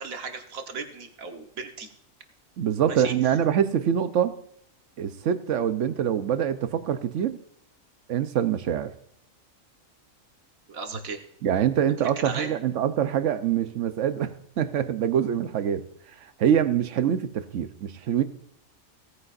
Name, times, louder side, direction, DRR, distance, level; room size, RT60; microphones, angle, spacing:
voice 1, 0.0-1.9 2.9-3.4 10.7-11.2 12.0-12.5, right 4 dB, 90° right, 4 dB, 1.7 m, -36 dB
voice 2, 2.6-4.3 5.0-7.4 8.1-8.9 11.4-15.9 16.2-18.2, right 9 dB, 70° right, 11 dB, 1.1 m, -25 dB
17.5 x 9.6 x 2.5 m, 0.71 s
omnidirectional pair, 1.4 m